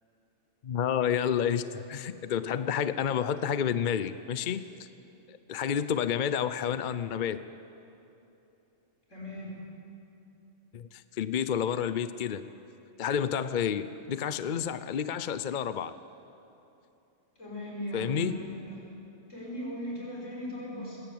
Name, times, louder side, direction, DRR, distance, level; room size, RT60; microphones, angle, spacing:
voice 1, 0.6-4.9 5.3-7.4 10.7-12.5 13.0-15.9 17.9-18.4, left 8 dB, 50° left, 13 dB, 0.6 m, -30 dB
voice 2, 9.1-9.5 17.4-18.7 19.3-21.0, equal, 65° left, -4 dB, 6.3 m, -38 dB
20.5 x 16.5 x 8.7 m, 2.9 s
omnidirectional pair, 1.3 m